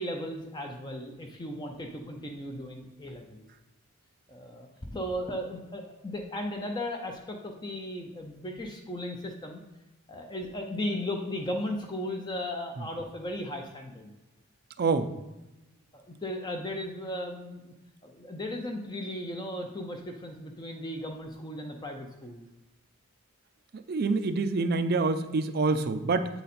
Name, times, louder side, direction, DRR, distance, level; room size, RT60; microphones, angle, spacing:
voice 1, 0.0-3.5 4.3-9.6 10.1-14.1 15.9-17.7 18.0-22.4, left 1 dB, 20° left, 2 dB, 0.5 m, -36 dB
voice 2, 14.8-15.1 23.7-26.3, right 3 dB, 45° right, 10 dB, 0.4 m, -26 dB
8.2 x 3.9 x 4.2 m, 0.99 s
head